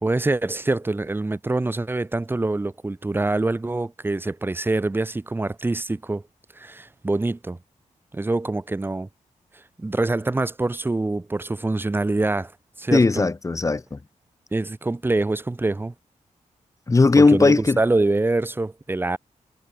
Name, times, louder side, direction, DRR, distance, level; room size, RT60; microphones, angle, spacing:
voice 1, 0.0-6.2 6.6-7.6 8.1-9.1 9.8-12.5 12.8-13.3 14.5-15.9 17.2-19.2, right 2 dB, 15° right, 1.8 m, -25 dB
voice 2, 12.9-14.0 16.9-17.8, left 3 dB, 25° left, 4.3 m, -17 dB
wide cardioid pair, 170°, 13 cm